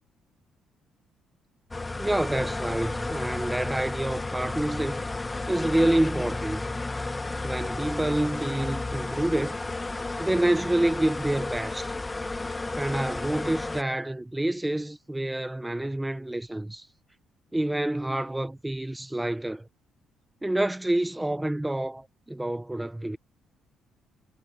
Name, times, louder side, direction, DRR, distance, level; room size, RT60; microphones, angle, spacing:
sound 1, 1.7-13.8, left 2 dB, 15° left, 0.9 m, -32 dB
voice 1, 2.0-5.1 5.5-6.7 7.4-9.6 10.2-11.9 12.8-16.9 17.5-19.7 20.4-23.2, right 1 dB, 5° right, 0.6 m, -28 dB
cardioid pair, 150°, 0 cm